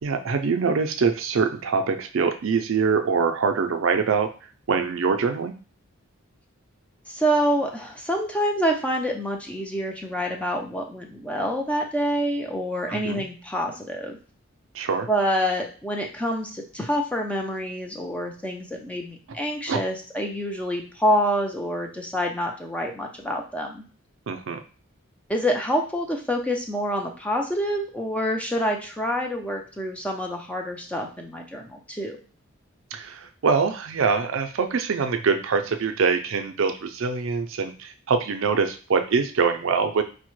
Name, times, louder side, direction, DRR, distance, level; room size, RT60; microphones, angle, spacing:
voice 1, 0.0-4.3 4.7-5.5 12.9-13.2 14.7-15.1 19.7-19.8 24.3-24.6 32.9-40.0, right 5 dB, 60° right, 6 dB, 0.4 m, -24 dB
voice 2, 7.1-14.2 15.1-23.8 25.3-32.2, equal, 5° left, 1 dB, 0.4 m, -27 dB
4.7 x 2.1 x 3.0 m, 0.39 s
head